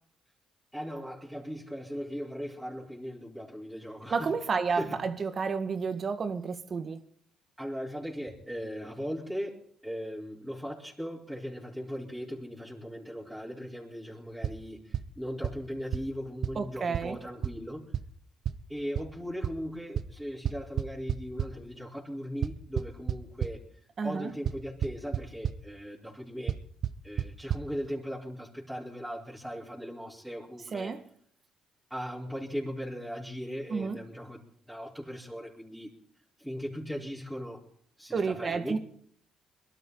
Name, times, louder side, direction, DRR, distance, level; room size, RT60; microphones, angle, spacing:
voice 1, 0.7-4.3 4.7-5.0 7.6-17.9 18.7-23.6 24.0-26.6 27.0-30.9 31.9-35.9 36.4-37.6 38.0-38.8, equal, ahead, 4.5 m, -38 dB
voice 2, 4.1-7.0 16.6-17.2 24.0-24.3 30.7-31.0 33.7-34.0 38.1-38.8, right 5 dB, 45° right, 1.9 m, -31 dB
sound 1, 14.4-14.5 14.9-15.0 15.4-15.5 15.9-16.0 16.4-16.5 16.9-17.0 17.4-17.5 17.9-18.0 18.5-18.6 19.0-19.1 19.4-19.5 20.0-20.1 20.5-21.5 22.4-23.5 24.5-24.6 24.8-25.2 25.4-25.5 26.5-26.6 26.8-26.9 27.2-27.3 27.5-27.6, right 9 dB, 65° right, 1.0 m, -28 dB
23.0 x 12.5 x 4.1 m
supercardioid pair, 65°, 0 cm